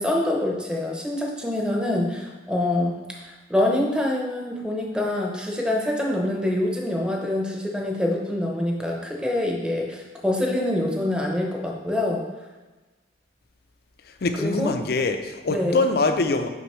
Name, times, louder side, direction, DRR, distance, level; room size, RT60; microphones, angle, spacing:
voice 1, 0.0-12.2 14.4-14.7 15.5-15.8, left 1 dB, 5° right, 0 dB, 0.8 m, -25 dB
voice 2, 14.2-16.5, left 3 dB, 60° left, 7 dB, 0.5 m, -23 dB
6.2 x 5.2 x 3.1 m, 1.2 s
head